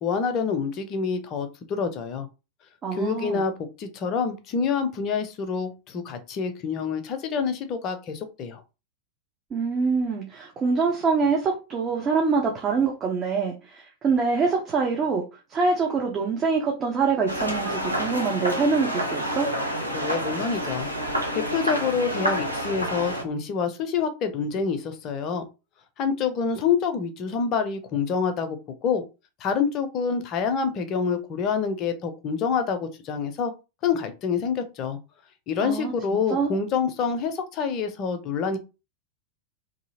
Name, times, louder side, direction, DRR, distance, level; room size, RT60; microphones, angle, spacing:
voice 1, 0.0-2.3 2.9-3.5 3.8-8.6 19.9-20.9 21.3-25.4 26.0-28.6 28.8-29.0 29.4-33.5 33.8-35.0 35.5-38.6, left 6 dB, 35° left, 0.6 m, -27 dB
voice 2, 2.8-3.4 9.5-15.2 15.5-19.5 35.6-35.9 36.3-36.5, right 4 dB, 25° right, 0.7 m, -25 dB
sound 1, 17.3-23.2, equal, 90° right, 0.7 m, -28 dB
2.8 x 2.7 x 2.8 m
figure-of-eight pair, 90°, 0 cm